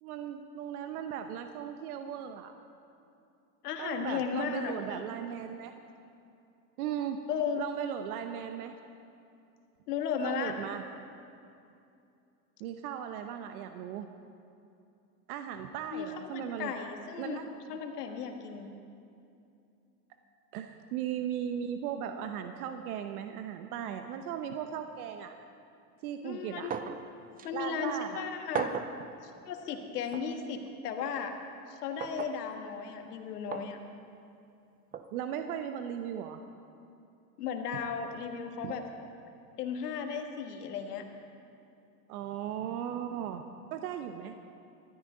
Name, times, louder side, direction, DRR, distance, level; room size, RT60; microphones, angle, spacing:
voice 1, 0.0-2.5 3.8-5.7 6.8-7.2 7.6-8.8 10.2-10.8 12.6-14.1 15.3-16.7 17.2-17.8 20.5-25.4 26.0-26.7 27.5-28.3 35.1-36.4 38.6-38.7 42.1-43.5 43.7-44.3, right 9 dB, 70° right, 7 dB, 0.9 m, -37 dB
voice 2, 3.6-5.1 7.3-7.6 9.9-10.5 15.9-17.4 17.7-18.7 26.2-26.7 27.4-28.7 29.2-31.3 31.7-33.8 37.4-38.8 39.6-41.1, left 6 dB, 85° left, 4 dB, 1.7 m, -35 dB
sound 1, 26.7-27.0 27.4-27.5 28.5-29.0 30.1-30.3 32.0-32.4 33.5-33.7 34.9-35.1, right 7 dB, 20° right, 0.5 m, -35 dB
19.5 x 13.0 x 3.9 m, 2.6 s
supercardioid pair, 110°, 45 cm